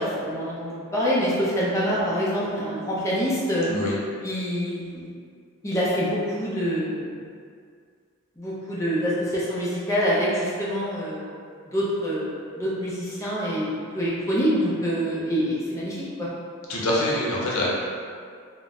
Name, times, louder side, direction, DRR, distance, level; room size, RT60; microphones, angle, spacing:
voice 1, 0.0-3.7 4.2-5.1 5.6-7.2 8.4-11.3 11.7-12.3 12.6-16.3, equal, 15° left, -8 dB, 0.6 m, -26 dB
voice 2, 16.7-17.7, left 1 dB, 85° left, -5 dB, 0.6 m, -24 dB
3.8 x 2.1 x 2.4 m, 2.2 s
head